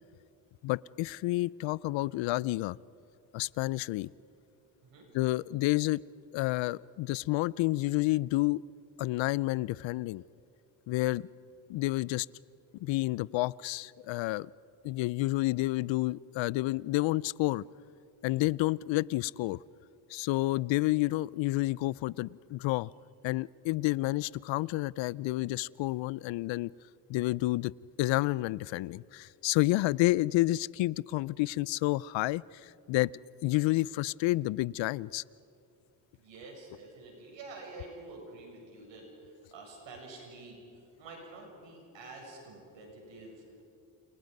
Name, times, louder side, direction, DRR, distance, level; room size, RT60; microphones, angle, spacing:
voice 1, 0.6-2.8 3.3-4.1 5.1-6.0 6.3-8.6 9.0-10.2 10.9-11.3 11.7-12.3 12.8-14.5 14.8-17.6 18.2-19.6 20.1-22.9 23.2-26.7 27.1-27.7 28.0-33.1 33.4-35.2, left 19 dB, 80° left, 23 dB, 0.6 m, -29 dB
voice 2, 36.2-43.7, right 2 dB, 80° right, 0 dB, 7.4 m, -48 dB
29.5 x 28.5 x 5.4 m, 2.6 s
supercardioid pair, 60°, 44 cm